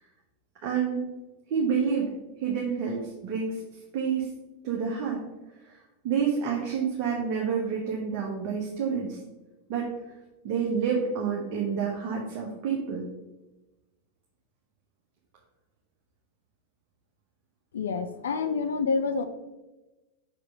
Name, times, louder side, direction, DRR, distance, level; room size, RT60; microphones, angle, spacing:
voice 1, 0.6-1.1 1.5-2.1 2.4-3.6 3.9-4.3 4.6-5.2 5.6-5.8 6.0-9.2 9.7-9.9 10.4-13.1, right 6 dB, 40° right, -2 dB, 1.2 m, -28 dB
voice 2, 17.7-19.3, left 4 dB, 65° left, 9 dB, 0.5 m, -27 dB
5.6 x 5.0 x 5.4 m, 1.1 s
figure-of-eight pair, 90°, 0 cm